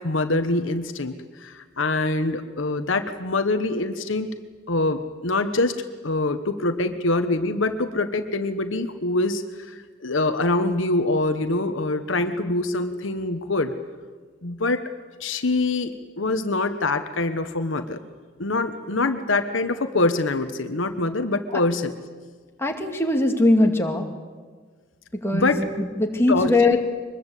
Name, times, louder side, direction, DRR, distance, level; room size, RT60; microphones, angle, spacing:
voice 1, 0.0-4.3 4.7-13.7 14.4-14.9 15.2-18.0 18.4-21.9 25.3-25.7 26.3-26.8, left 2 dB, 70° left, 8 dB, 1.2 m, -24 dB
voice 2, 22.6-24.0 25.2-26.8, left 2 dB, 15° left, 2 dB, 2.3 m, -21 dB
23.5 x 21.0 x 8.4 m, 1.5 s
head